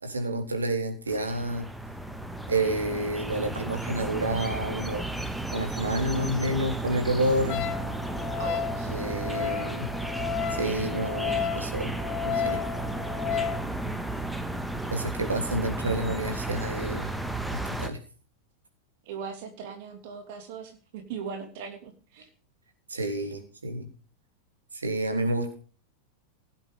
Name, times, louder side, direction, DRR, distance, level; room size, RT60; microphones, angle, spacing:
voice 1, 0.0-1.7 2.5-5.0 5.5-7.7 8.9-9.9 10.5-11.9 12.3-12.6 14.9-17.1 17.5-18.0 22.9-23.9 24.7-25.5, right 1 dB, 75° right, 6 dB, 3.9 m, -29 dB
sound 1, 1.1-17.9, right 2 dB, ahead, 1.7 m, -33 dB
Wind instrument woodwind instrument, 7.5-13.6, left 8 dB, 40° left, 1.4 m, -33 dB
voice 2, 8.4-8.9 19.0-22.3, right 6 dB, 50° right, 6 dB, 3.0 m, -39 dB
17.0 x 8.8 x 5.4 m, 0.38 s
figure-of-eight pair, 90°, 0 cm